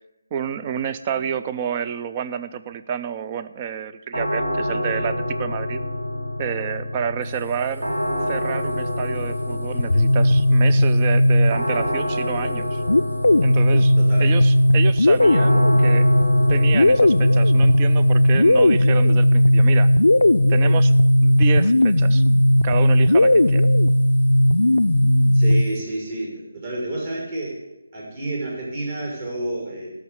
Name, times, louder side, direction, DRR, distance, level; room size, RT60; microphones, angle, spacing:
voice 1, 0.3-5.8 6.4-7.9 8.3-12.8 13.4-16.1 16.5-19.9 20.5-20.9 21.2-22.2 22.6-23.7, right 8 dB, 25° right, 12 dB, 0.5 m, -29 dB
sound 1, 4.1-23.0, left 1 dB, 60° right, 2.4 m, -28 dB
sound 2, 9.8-11.9 12.9-25.8, left 1 dB, 75° left, 0.5 m, -16 dB
voice 2, 14.0-14.4 25.3-27.6 27.9-29.9, right 1 dB, 40° right, -3 dB, 5.6 m, -30 dB
13.0 x 6.2 x 8.5 m, 0.99 s
figure-of-eight pair, 155°, 0 cm